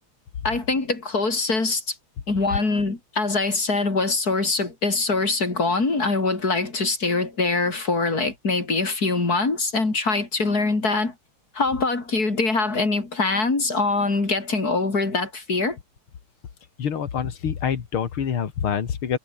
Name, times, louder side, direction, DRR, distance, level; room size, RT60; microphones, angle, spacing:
voice 1, 0.4-2.0 2.3-11.1 11.5-15.8, left 3 dB, 45° left, 4.7 m, -23 dB
voice 2, 16.8-19.2, left 7 dB, 80° left, 2.8 m, -26 dB
omnidirectional pair, 2.3 m